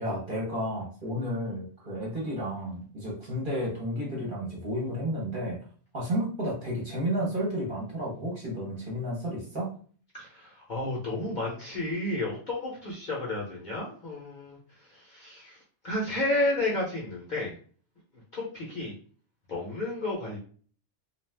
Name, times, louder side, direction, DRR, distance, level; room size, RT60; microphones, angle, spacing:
voice 1, 0.0-5.6 5.9-9.7, equal, 45° right, -3 dB, 1.0 m, -32 dB
voice 2, 10.1-15.6 15.8-17.5 18.3-18.9 19.5-20.4, left 2 dB, 45° left, -4 dB, 0.8 m, -32 dB
2.4 x 2.4 x 3.3 m, 0.44 s
omnidirectional pair, 1.3 m